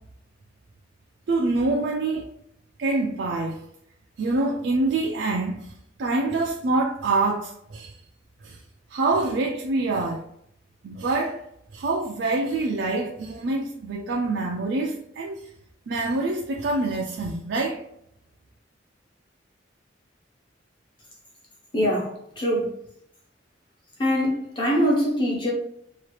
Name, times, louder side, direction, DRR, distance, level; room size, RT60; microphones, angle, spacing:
voice 1, 1.3-2.3 2.8-3.6 4.2-5.6 6.0-8.0 8.4-8.6 8.9-10.2 10.8-11.4 11.7-15.5 15.9-17.8, right 2 dB, 65° right, 0.4 m, -25 dB
voice 2, 21.7-22.8 24.0-25.5, equal, 25° left, 1.0 m, -23 dB
2.9 x 2.4 x 3.1 m
head